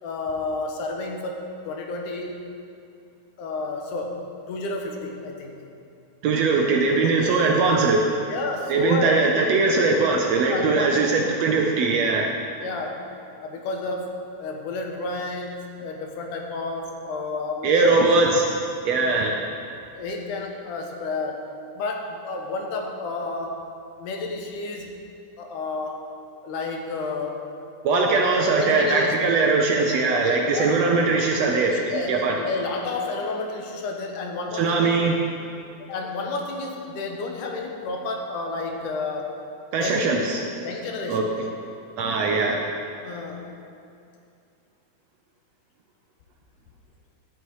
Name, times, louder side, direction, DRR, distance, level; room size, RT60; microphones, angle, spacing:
voice 1, 0.0-2.5 3.4-5.6 8.3-9.3 10.5-11.2 12.6-13.1 13.4-18.1 19.9-21.5 21.7-23.7 24.0-25.0 25.4-26.1 26.4-27.5 27.9-28.2 28.5-29.2 30.1-30.8 31.6-34.9 35.8-39.4 39.8-41.3 43.0-43.5, left 3 dB, 85° left, 2 dB, 2.6 m, -31 dB
voice 2, 6.2-8.0 8.7-12.3 17.6-18.4 18.8-19.4 27.8-32.4 34.5-35.1 39.7-40.4 41.1-41.5 42.0-42.6, right 3 dB, 70° right, 1 dB, 1.7 m, -21 dB
11.5 x 9.4 x 4.7 m, 2.5 s
omnidirectional pair, 3.6 m